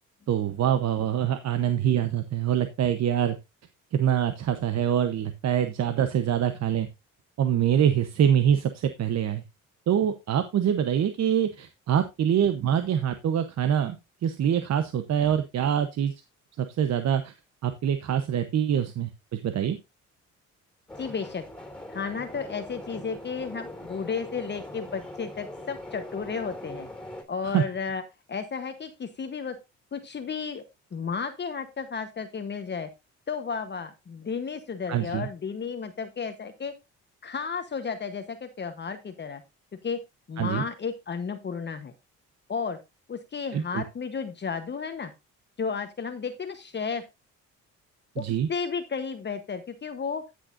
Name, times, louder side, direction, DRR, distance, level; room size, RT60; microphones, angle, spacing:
voice 1, 0.3-3.4 3.9-6.9 7.4-9.4 9.9-14.0 14.2-16.1 16.6-17.3 17.6-19.8 27.5-27.6 34.9-35.3 40.4-40.6 43.5-43.8 48.2-48.5, right 9 dB, 60° right, 9 dB, 0.9 m, -25 dB
sound 1, 20.9-27.2, left 1 dB, 5° left, 2.9 m, -41 dB
voice 2, 21.0-21.5 21.9-26.9 27.3-28.0 28.3-29.6 29.9-30.6 30.9-32.9 33.3-36.7 37.2-39.4 39.8-40.0 40.3-41.9 42.5-42.8 43.1-45.1 45.6-47.0 48.2-50.2, left 5 dB, 35° left, 7 dB, 1.0 m, -33 dB
14.5 x 6.5 x 2.6 m, 0.23 s
cardioid pair, 90°, 30 cm